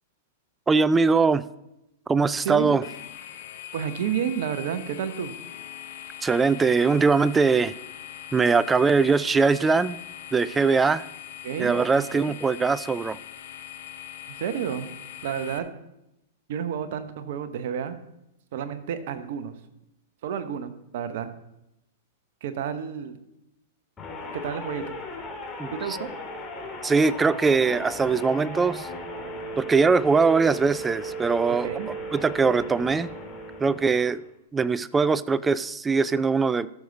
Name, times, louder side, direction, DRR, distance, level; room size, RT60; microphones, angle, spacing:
voice 1, 0.7-1.5 2.1-2.8 6.2-7.7 8.3-10.0 10.3-11.0 11.6-13.2 25.6-25.7 26.8-28.9 29.6-31.7 32.1-33.1 33.6-34.2 34.5-36.7, right 4 dB, 15° right, 18 dB, 0.4 m, -21 dB
voice 2, 2.4-2.7 3.3-3.4 3.7-5.3 11.4-12.3 14.4-14.9 15.2-15.7 16.5-18.0 18.5-19.6 20.2-21.3 22.4-23.2 24.3-25.0 25.7-26.1 31.5-31.9, right 8 dB, 60° right, 10 dB, 0.9 m, -31 dB
sound 1, 2.8-15.6, left 11 dB, 60° left, 0.7 m, -41 dB
sound 2, 24.0-34.3, right 1 dB, 20° left, 2.1 m, -36 dB
14.0 x 6.6 x 4.0 m, 0.86 s
hypercardioid pair, 110°, 0 cm